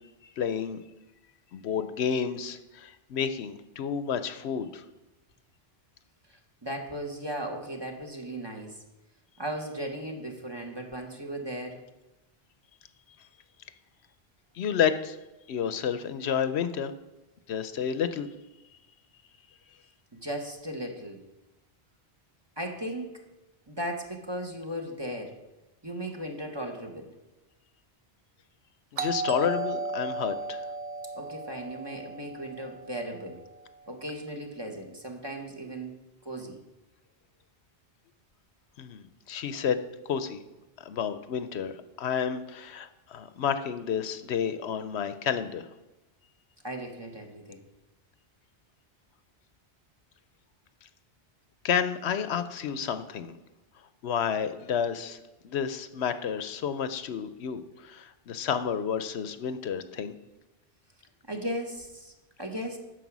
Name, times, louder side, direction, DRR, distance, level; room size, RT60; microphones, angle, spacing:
voice 1, 0.4-0.8 1.5-4.8 14.5-15.2 15.5-16.9 17.5-18.3 28.9-30.6 38.8-39.8 40.1-40.4 40.8-45.7 51.6-53.4 54.0-55.2 55.4-60.1, left 7 dB, 80° left, 11 dB, 0.9 m, -30 dB
voice 2, 6.3-8.8 9.4-11.8 20.1-21.2 22.6-23.1 23.7-25.4 25.8-27.1 31.1-33.4 33.9-36.6 46.6-47.6 61.3-62.8, right 1 dB, 25° right, 3 dB, 1.2 m, -37 dB
Doorbell, 29.0-33.6, right 3 dB, 50° right, 0.5 m, -35 dB
9.2 x 6.7 x 6.1 m, 1.0 s
omnidirectional pair, 1.1 m